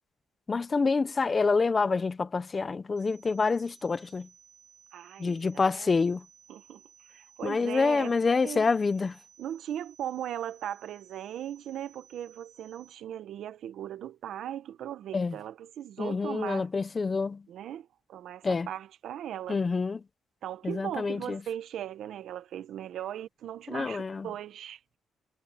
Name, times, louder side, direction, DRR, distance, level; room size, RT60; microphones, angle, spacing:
voice 1, 0.5-4.3 5.2-6.2 7.4-9.1 15.1-15.3 16.0-17.4 18.4-18.7 19.5-20.0 20.6-21.4 23.7-24.3, left 4 dB, 30° left, 1.2 m, -27 dB
sound 1, 3.0-13.0, right 8 dB, 50° right, 6.0 m, -58 dB
voice 2, 4.9-6.0 6.5-6.8 7.1-8.2 8.4-8.7 9.4-16.7 17.5-19.6 20.4-25.0, right 11 dB, 75° right, 1.4 m, -38 dB
cardioid pair, 95°, 0 cm